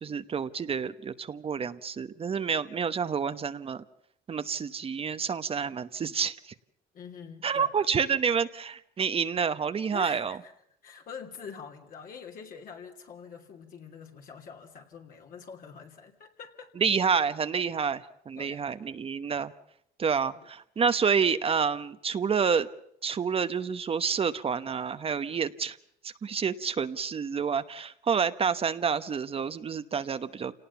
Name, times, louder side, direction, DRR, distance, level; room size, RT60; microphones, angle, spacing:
voice 1, 0.0-3.8 4.3-6.5 7.4-10.4 16.8-19.5 20.0-22.7 23.0-25.8 26.0-30.5, right 6 dB, 35° right, 12 dB, 1.0 m, -28 dB
voice 2, 6.9-7.7 9.9-10.5 10.8-16.7 18.3-18.6 20.1-20.5, left 6 dB, 55° left, 2 dB, 2.9 m, -45 dB
28.0 x 18.5 x 7.1 m, 0.73 s
cardioid pair, 110°, 17 cm